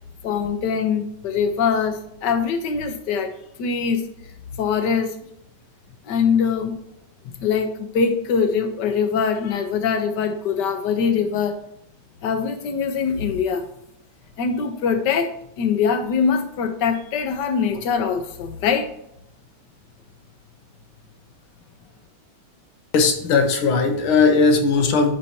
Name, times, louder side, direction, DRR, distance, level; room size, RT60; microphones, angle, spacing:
voice 1, 0.2-4.0 4.6-5.2 6.0-6.8 7.3-11.5 12.2-13.7 14.4-18.9, left 6 dB, 60° left, 7 dB, 1.4 m, -23 dB
voice 2, 22.9-25.1, left 4 dB, 80° left, 5 dB, 1.9 m, -18 dB
10.5 x 4.5 x 2.8 m, 0.79 s
omnidirectional pair, 2.3 m